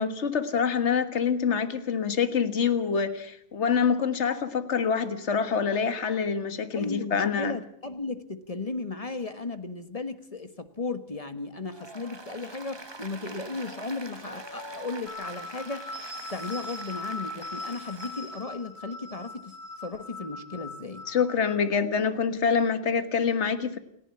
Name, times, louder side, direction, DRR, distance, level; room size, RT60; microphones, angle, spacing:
voice 1, 0.0-7.6 21.1-23.8, left 6 dB, 55° left, 11 dB, 1.7 m, -26 dB
voice 2, 6.7-15.9 16.3-19.6 19.8-21.0, left 3 dB, 25° left, 10 dB, 1.3 m, -35 dB
Applause, 11.6-18.4, right 2 dB, 20° right, 1.2 m, -44 dB
sound 1, 15.1-21.6, left 2 dB, 75° left, 7.4 m, -40 dB
29.0 x 11.0 x 9.7 m, 0.71 s
omnidirectional pair, 1.4 m